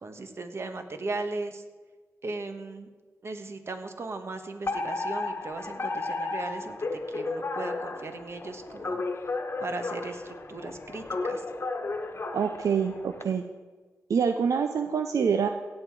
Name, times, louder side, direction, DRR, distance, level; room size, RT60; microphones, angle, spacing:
voice 1, 0.0-1.6 2.2-2.9 3.2-6.8 7.1-9.0 9.6-11.4, right 3 dB, 50° right, 7 dB, 1.3 m, -37 dB
Alarm, 4.7-13.2, left 3 dB, 45° left, 1.2 m, -33 dB
voice 2, 12.3-13.4 14.1-15.5, right 6 dB, 75° right, 7 dB, 0.6 m, -26 dB
16.5 x 7.8 x 4.8 m, 1.4 s
cardioid pair, 70°, 6 cm